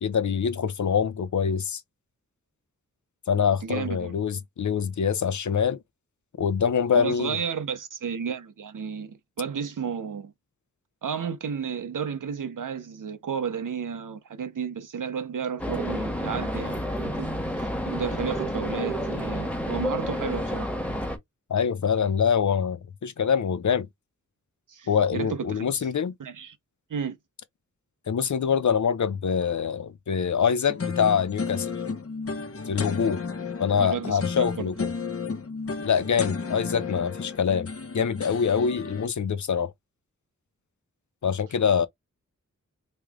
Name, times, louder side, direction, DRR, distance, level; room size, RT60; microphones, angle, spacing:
voice 1, 0.0-1.8 3.3-5.8 6.4-7.4 21.5-23.9 24.9-26.1 28.1-31.7 32.7-33.2 33.6-34.9 35.8-37.7 37.9-39.7 41.2-41.9, left 7 dB, 70° left, 0.7 m, -25 dB
voice 2, 3.6-4.2 6.9-10.3 11.0-17.3 17.6-20.7 24.7-25.9 26.2-26.6 26.9-27.2 33.8-34.7, right 7 dB, 85° right, 0.9 m, -32 dB
sound 1, 15.6-21.2, equal, 5° left, 1.3 m, -30 dB
sound 2, 30.7-39.1, left 4 dB, 45° left, 1.0 m, -33 dB
3.3 x 3.2 x 3.6 m
wide cardioid pair, 65°, 31 cm